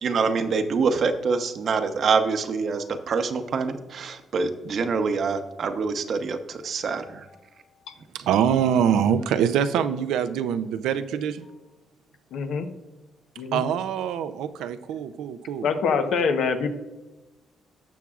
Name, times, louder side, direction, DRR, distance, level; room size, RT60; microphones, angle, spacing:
voice 1, 0.0-7.3, right 5 dB, 55° right, 8 dB, 0.8 m, -25 dB
voice 2, 8.1-11.5 13.5-15.7, right 8 dB, 90° right, 11 dB, 0.5 m, -24 dB
voice 3, 12.3-12.7 13.4-13.6 15.6-16.7, left 5 dB, 75° left, 6 dB, 0.9 m, -25 dB
18.0 x 6.0 x 2.4 m, 1.1 s
cardioid pair, 90°, 0 cm